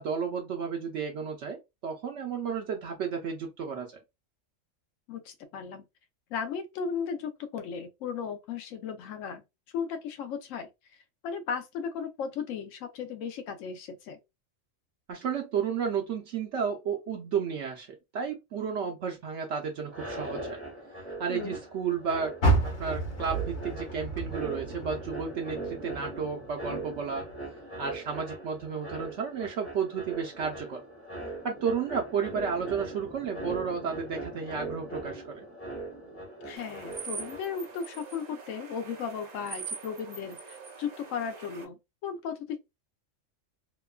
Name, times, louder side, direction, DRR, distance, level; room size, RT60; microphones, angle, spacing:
voice 1, 0.0-3.9 15.1-20.6 21.1-22.3 22.8-27.2 27.8-30.8 31.4-35.5, right 6 dB, 70° right, 0.8 m, -32 dB
voice 2, 5.1-5.8 6.3-9.4 9.7-10.7 11.2-14.2 21.3-21.6 36.4-42.6, left 6 dB, 80° left, 1.0 m, -36 dB
sound 1, 19.9-37.7, right 2 dB, 15° left, 0.6 m, -40 dB
Car, 22.4-25.7 26.1-27.4 27.9-28.0 28.6-28.7, right 2 dB, 60° left, 1.1 m, -30 dB
sound 2, 36.6-41.6, right 5 dB, 55° right, 0.5 m, -43 dB
2.8 x 2.2 x 2.2 m
omnidirectional pair, 1.3 m